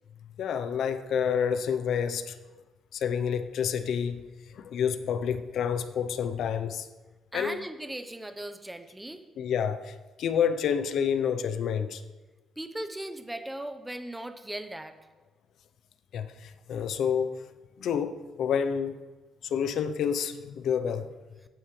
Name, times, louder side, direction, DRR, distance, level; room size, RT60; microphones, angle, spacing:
voice 1, 0.4-2.3 2.9-4.2 4.5-6.9 7.3-7.6 9.4-12.0 16.1-17.4 17.8-19.0 19.4-21.1, left 7 dB, 70° left, 0.7 m, -29 dB
voice 2, 7.3-9.2 12.6-15.0, right 1 dB, 10° right, 0.9 m, -38 dB
15.5 x 9.1 x 3.3 m
cardioid pair, 90°, 0 cm